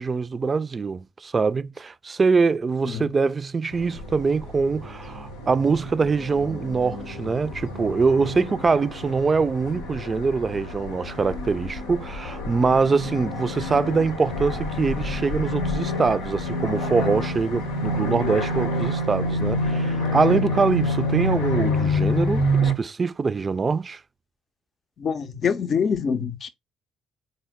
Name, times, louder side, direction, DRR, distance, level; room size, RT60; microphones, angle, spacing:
voice 1, 0.0-24.0, right 4 dB, 35° right, 0.4 m, -23 dB
sound 1, 3.7-22.7, left 1 dB, 85° left, 0.7 m, -28 dB
voice 2, 25.0-26.5, left 6 dB, 50° left, 0.6 m, -25 dB
3.9 x 2.1 x 3.5 m
hypercardioid pair, 45°, 0 cm